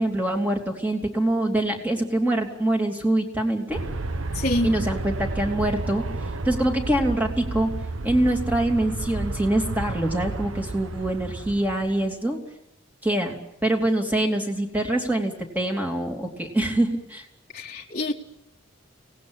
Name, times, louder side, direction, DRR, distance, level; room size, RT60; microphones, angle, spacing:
voice 1, 0.0-3.8 4.6-6.0 6.4-7.7 8.0-12.4 13.0-17.2, right 1 dB, 10° right, 3.0 m, -24 dB
Aircraft, 3.7-12.1, right 2 dB, 90° right, 1.2 m, -31 dB
voice 2, 4.3-4.7 17.5-18.1, left 1 dB, 35° left, 1.6 m, -26 dB
25.0 x 18.5 x 8.9 m
head